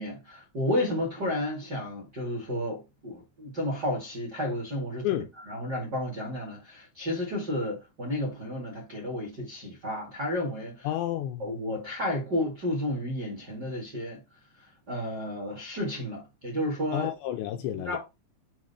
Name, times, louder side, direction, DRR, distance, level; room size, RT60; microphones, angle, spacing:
voice 1, 0.0-10.9 11.4-14.2 14.9-17.1 17.8-18.0, left 1 dB, 45° right, 1.2 m, -32 dB
voice 2, 10.8-11.5 16.9-18.0, left 12 dB, 80° left, 2.6 m, -30 dB
7.6 x 3.0 x 5.7 m
omnidirectional pair, 5.5 m